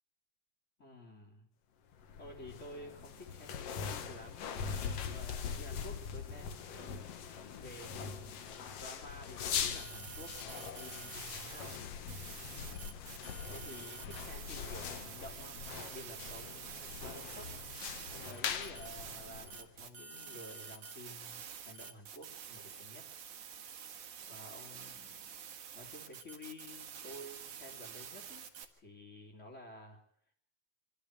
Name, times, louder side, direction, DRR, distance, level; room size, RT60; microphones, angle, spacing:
voice 1, 0.8-1.5 2.2-4.7 5.0-11.8 12.2-12.8 13.5-17.6 18.1-23.1 24.3-25.4 25.7-28.5 28.8-30.0, left 1 dB, 25° left, -3 dB, 3.2 m, -52 dB
sound 1, 2.0-19.8, left 7 dB, 60° left, 2.3 m, -42 dB
sound 2, 9.6-11.8 12.1-28.6, right 7 dB, 80° right, 3.2 m, -48 dB
25.0 x 13.5 x 8.2 m, 0.63 s
omnidirectional pair, 3.4 m